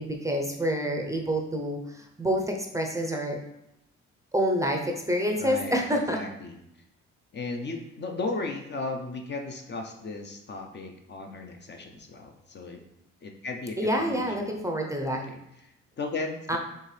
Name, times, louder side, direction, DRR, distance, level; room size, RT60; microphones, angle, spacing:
voice 1, 0.0-3.4 4.3-6.2 13.8-15.2 16.5-16.6, equal, 10° right, 2 dB, 0.5 m, -27 dB
voice 2, 5.4-6.6 7.3-12.8 13.2-14.6 15.1-16.6, left 3 dB, 35° left, 4 dB, 0.5 m, -36 dB
4.5 x 2.9 x 3.2 m, 0.82 s
cardioid pair, 90°, 30 cm